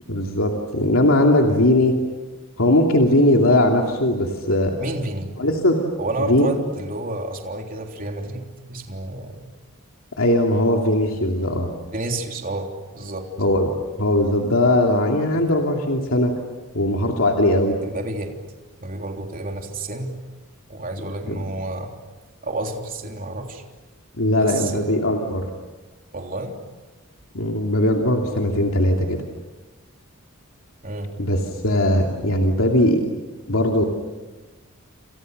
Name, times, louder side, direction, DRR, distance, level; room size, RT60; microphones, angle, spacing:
voice 1, 0.1-2.0 2.6-4.8 5.4-5.8 6.2-6.5 10.2-11.7 13.4-13.7 14.0-16.3 16.7-17.8 21.3-21.4 24.2-25.5 27.3-29.2 31.2-33.0 33.5-33.8, left 1 dB, 70° left, 1 dB, 2.9 m, -19 dB
voice 2, 4.8-5.3 6.0-9.5 11.9-13.3 17.8-18.4 18.8-20.2 20.7-21.9 22.4-23.6 24.4-24.9 26.1-26.6 30.8-31.1, right 2 dB, 40° right, 2 dB, 3.4 m, -30 dB
29.5 x 28.5 x 6.7 m, 1.2 s
head